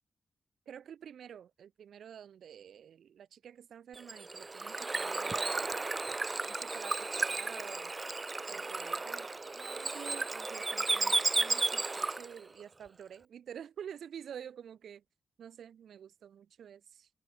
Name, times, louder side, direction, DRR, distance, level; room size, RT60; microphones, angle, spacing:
voice 1, 0.7-5.9 6.4-7.9 8.5-15.0 15.4-17.1, right 8 dB, 85° right, 6.0 m, -49 dB
Bird / Water, 4.0-12.4, right 3 dB, 25° right, 1.3 m, -33 dB
open air
wide cardioid pair, 120°, 0 cm